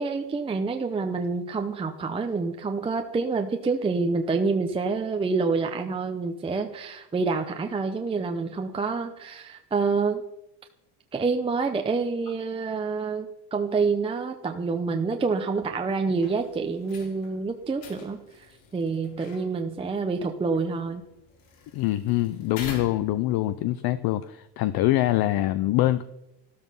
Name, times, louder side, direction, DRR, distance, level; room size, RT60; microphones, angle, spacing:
voice 1, 0.0-10.2 11.1-18.2 18.7-21.0, right 4 dB, 10° right, 5 dB, 0.6 m, -27 dB
sound 1, 16.1-23.6, left 5 dB, 65° left, 4.4 m, -46 dB
voice 2, 21.7-26.0, left 15 dB, 50° left, 14 dB, 0.6 m, -24 dB
13.5 x 13.0 x 5.5 m, 0.87 s
cardioid pair, 150°, 48 cm